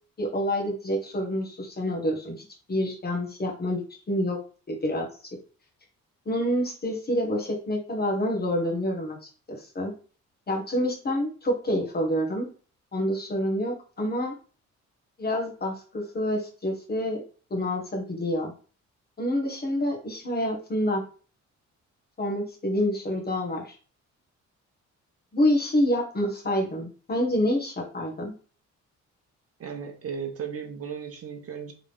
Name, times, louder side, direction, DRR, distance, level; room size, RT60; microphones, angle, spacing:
voice 1, 0.2-4.4 4.7-5.1 6.2-9.2 9.5-9.9 10.5-12.5 12.9-14.3 15.2-17.2 17.5-18.5 19.2-21.0 22.2-23.7 25.3-28.3, left 1 dB, 30° left, 1 dB, 1.7 m, -27 dB
voice 2, 29.6-31.7, right 7 dB, 50° right, 5 dB, 0.9 m, -35 dB
3.8 x 3.3 x 3.6 m, 0.38 s
cardioid pair, 90°, 30 cm